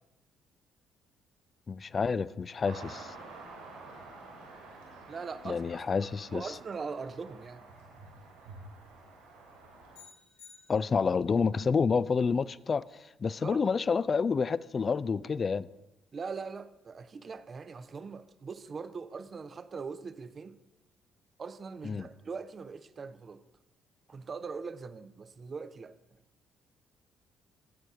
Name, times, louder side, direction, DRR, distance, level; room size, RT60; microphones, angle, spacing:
voice 1, 1.7-3.1 5.4-6.5 10.7-15.7 21.8-22.1, left 5 dB, 40° left, 0.3 m, -29 dB
sound 1, 2.6-10.0, right 3 dB, 75° right, 3.1 m, -49 dB
voice 2, 5.1-5.8 6.3-7.7 13.4-13.6 16.1-20.6 21.4-23.4 24.1-26.0, right 5 dB, 40° right, 0.6 m, -41 dB
sound 2, 9.9-11.3, left 6 dB, 85° left, 3.4 m, -55 dB
13.0 x 8.8 x 3.6 m
figure-of-eight pair, 45°, 0 cm